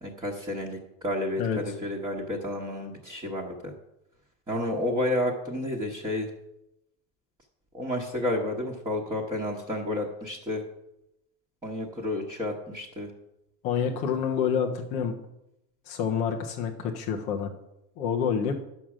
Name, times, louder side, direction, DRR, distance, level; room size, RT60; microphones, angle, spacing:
voice 1, 0.0-3.7 4.5-6.3 7.7-10.6 11.6-13.1, left 1 dB, 10° right, -3 dB, 1.1 m, -31 dB
voice 2, 1.4-1.7 13.6-15.1 15.9-17.5 18.0-18.5, left 7 dB, 15° left, 2 dB, 0.3 m, -28 dB
10.5 x 6.3 x 7.2 m, 0.86 s
supercardioid pair, 155°, 49 cm